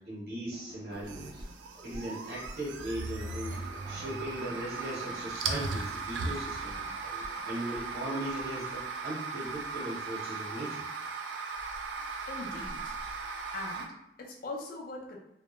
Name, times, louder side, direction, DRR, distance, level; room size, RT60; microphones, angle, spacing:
voice 1, 0.0-1.4 1.8-3.6 3.9-6.8 7.4-10.8, right 1 dB, 60° right, -6 dB, 0.9 m, -38 dB
sound 1, 0.5-8.8, equal, 25° right, 0.5 m, -51 dB
sound 2, 0.9-13.9, right 4 dB, 85° right, 0.3 m, -37 dB
voice 2, 12.3-13.0 13.5-15.2, left 2 dB, 55° left, 0 dB, 0.5 m, -41 dB
2.1 x 2.1 x 3.0 m, 0.88 s
head